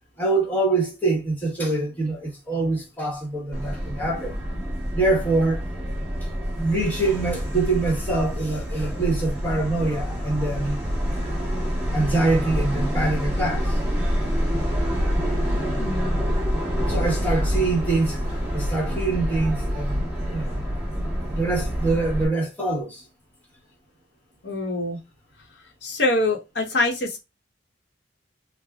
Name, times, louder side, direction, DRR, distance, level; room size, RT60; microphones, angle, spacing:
voice 1, 0.2-4.3 4.9-5.6 6.6-10.8 11.9-14.0 16.9-18.2 18.5-20.0 20.3-20.6 21.3-23.0, right 2 dB, 10° left, 1.1 m, -24 dB
Subway metro underground, 3.5-22.3, equal, 10° right, 1.2 m, -27 dB
voice 2, 15.8-16.2 24.4-25.0 25.8-27.2, left 2 dB, 65° left, 0.9 m, -24 dB
3.4 x 2.1 x 3.5 m
head